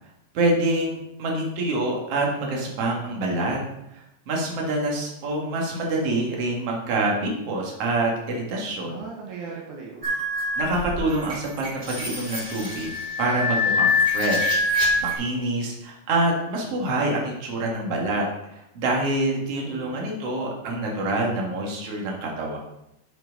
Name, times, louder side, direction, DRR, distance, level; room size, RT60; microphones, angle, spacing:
voice 1, 0.3-3.6 4.3-9.0 10.6-12.9 13.2-18.2 18.5-22.6, right 2 dB, 55° right, -2 dB, 2.6 m, -26 dB
voice 2, 8.8-10.1 19.4-20.2, right 5 dB, 75° right, -1 dB, 2.5 m, -39 dB
sound 1, 10.0-15.2, left 3 dB, 15° right, 3.1 m, -25 dB
7.6 x 6.0 x 5.2 m, 0.86 s
omnidirectional pair, 3.6 m